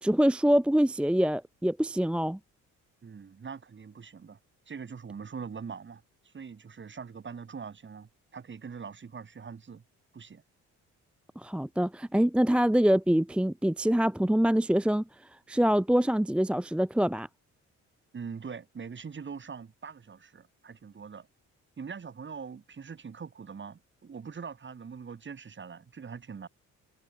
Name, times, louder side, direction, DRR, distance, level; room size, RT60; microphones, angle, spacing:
voice 1, 0.0-2.4 11.4-15.0 15.5-17.3, equal, 5° right, 0.7 m, -25 dB
voice 2, 3.0-4.4 4.7-9.8 10.1-10.4 18.1-21.3 21.8-26.5, right 6 dB, 40° right, 4.4 m, -42 dB
cardioid pair, 90°, 30 cm